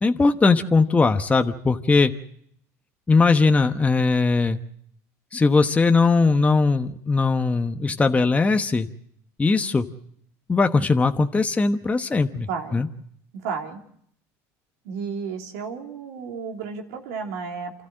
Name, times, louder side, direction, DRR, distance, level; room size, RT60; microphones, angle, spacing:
voice 1, 0.0-2.1 3.1-4.6 5.3-8.9 9.4-9.9 10.5-12.9, left 4 dB, 15° left, 7 dB, 1.1 m, -20 dB
voice 2, 12.5-12.8 13.4-13.8 14.8-17.7, right 5 dB, 85° right, 2 dB, 3.1 m, -32 dB
28.5 x 13.0 x 7.7 m, 0.69 s
supercardioid pair, 100°, 8 cm